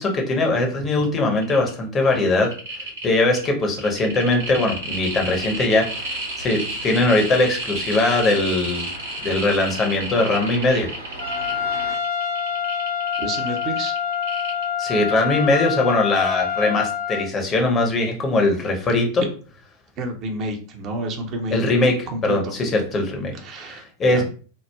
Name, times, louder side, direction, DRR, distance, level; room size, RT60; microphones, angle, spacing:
voice 1, 0.0-2.5 3.0-6.1 6.4-8.9 9.2-10.9 14.8-19.2 21.5-23.3 23.6-24.2, left 2 dB, 25° left, 2 dB, 0.6 m, -21 dB
sound 1, 1.0-1.1 1.3-1.7 2.0-15.1 15.4-15.5, right 2 dB, 60° right, 1.0 m, -31 dB
sound 2, 4.2-12.0, right 1 dB, 85° right, 0.9 m, -40 dB
Trumpet, 11.2-17.2, left 8 dB, 60° left, 0.9 m, -26 dB
voice 2, 13.2-13.9 20.0-21.6 22.1-22.5 23.3-23.8 24.1-24.2, right 1 dB, 35° right, 4 dB, 0.5 m, -29 dB
2.9 x 2.0 x 2.2 m, 0.39 s
figure-of-eight pair, 90°, 0 cm